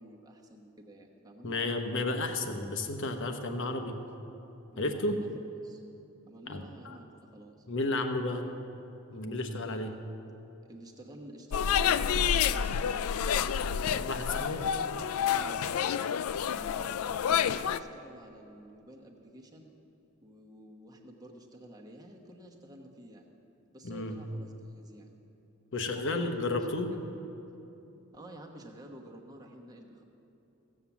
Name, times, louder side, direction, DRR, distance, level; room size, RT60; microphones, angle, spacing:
voice 1, 0.0-1.7 4.7-5.8 6.3-7.7 9.5-10.1 10.6-15.0 15.3-15.8 16.4-19.7 20.2-23.3 23.7-25.1 25.9-26.3 28.1-30.0, right 1 dB, 20° right, 0 dB, 1.1 m, -50 dB
voice 2, 1.4-4.0 4.8-5.2 6.5-7.0 7.7-8.5 9.1-9.9 14.1-14.6 23.8-24.2 25.7-26.9, left 2 dB, 60° left, 5 dB, 1.0 m, -32 dB
sound 1, 11.5-17.8, left 8 dB, 75° left, 0.4 m, -29 dB
16.0 x 7.4 x 7.1 m, 2.9 s
head